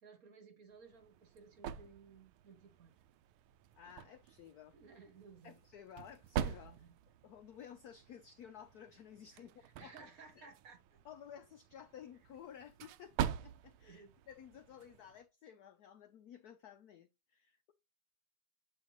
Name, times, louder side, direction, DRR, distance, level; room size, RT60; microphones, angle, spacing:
voice 1, 0.0-2.9 4.7-5.6 6.7-6.9 9.3-11.0 13.8-14.1, right 5 dB, 50° right, 1.4 m, -58 dB
sound 1, 0.7-15.2, right 10 dB, 85° right, 1.4 m, -45 dB
voice 2, 3.7-4.8 5.4-6.9 7.2-9.5 9.8-10.1 10.4-10.5 11.0-17.7, left 9 dB, 80° left, 0.8 m, -54 dB
8.0 x 4.4 x 3.0 m
omnidirectional pair, 2.3 m